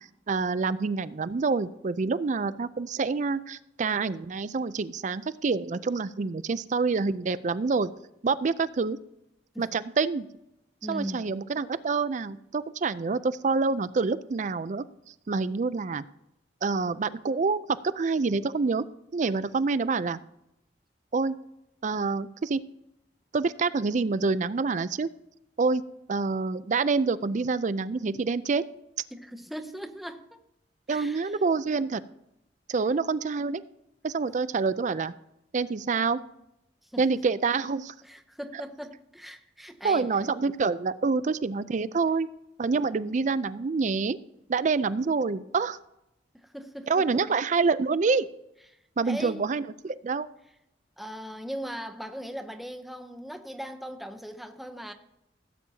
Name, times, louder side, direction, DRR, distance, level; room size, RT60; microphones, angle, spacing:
voice 1, 0.0-7.9 8.2-9.0 9.6-10.3 10.9-14.8 15.3-16.0 16.6-18.8 19.1-20.2 21.1-21.4 21.8-22.6 23.3-25.1 25.6-25.8 26.1-28.6 30.9-32.0 32.7-33.6 34.0-35.1 35.5-36.2 37.0-37.9 39.8-42.3 42.6-44.2 44.5-45.8 46.9-48.3 49.0-50.3, right 4 dB, 40° right, 0.4 m, -27 dB
voice 2, 10.8-11.3 29.1-30.4 30.9-31.4 36.8-37.2 38.0-40.1 46.3-47.3 49.0-49.5 51.0-54.9, equal, ahead, 0.7 m, -39 dB
17.0 x 8.5 x 2.8 m
head